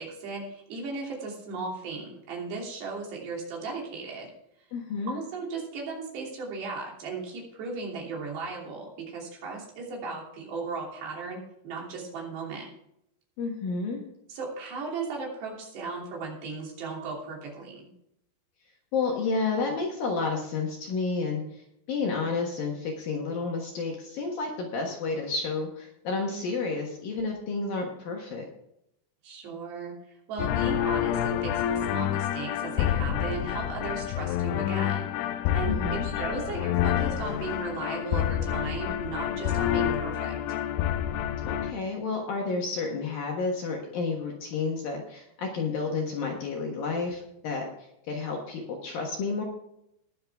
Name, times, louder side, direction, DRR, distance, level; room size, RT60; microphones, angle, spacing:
voice 1, 0.0-4.3 5.1-12.7 14.3-17.9 29.2-29.9 30.3-35.1 35.5-40.4, right 4 dB, 65° right, -2 dB, 4.9 m, -36 dB
voice 2, 4.7-5.2 13.4-14.0 18.9-28.4 35.7-36.1 41.5-49.4, left 4 dB, 60° left, 0 dB, 2.6 m, -31 dB
sound 1, 30.4-41.7, left 11 dB, 90° left, 3.2 m, -28 dB
20.0 x 7.5 x 3.6 m, 0.77 s
omnidirectional pair, 5.5 m